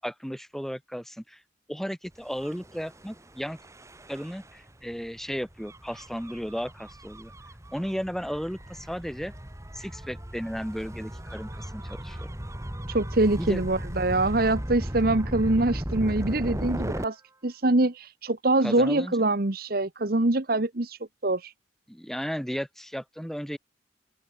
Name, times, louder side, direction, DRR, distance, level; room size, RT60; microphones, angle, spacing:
voice 1, 0.0-1.4 1.7-3.6 4.1-7.3 7.7-9.3 9.7-12.3 13.4-13.6 18.6-19.2 21.9-23.6, equal, ahead, 5.8 m, -34 dB
Gull seagull / Waves surf / Siren, 2.3-17.1, equal, 15° right, 2.2 m, -36 dB
voice 2, 12.9-17.2 17.4-21.0 21.2-21.5, right 2 dB, 50° right, 1.3 m, -24 dB
open air
head